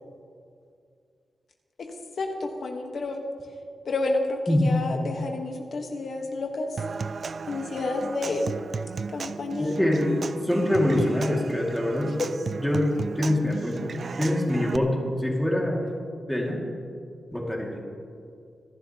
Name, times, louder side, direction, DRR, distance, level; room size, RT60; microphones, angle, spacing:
voice 1, 1.8-3.2 3.9-6.7 7.5-8.5 9.1-9.8 12.2-12.3, left 2 dB, 60° left, 2 dB, 1.1 m, -30 dB
Human voice / Acoustic guitar / Percussion, 6.8-14.8, right 5 dB, 45° right, 0.3 m, -35 dB
voice 2, 9.6-12.1 12.6-12.9 13.2-13.9 14.2-15.9 16.3-16.6 17.3-17.8, left 1 dB, 5° left, -2 dB, 2.0 m, -24 dB
26.0 x 11.5 x 2.9 m, 2.3 s
wide cardioid pair, 150°, 0 cm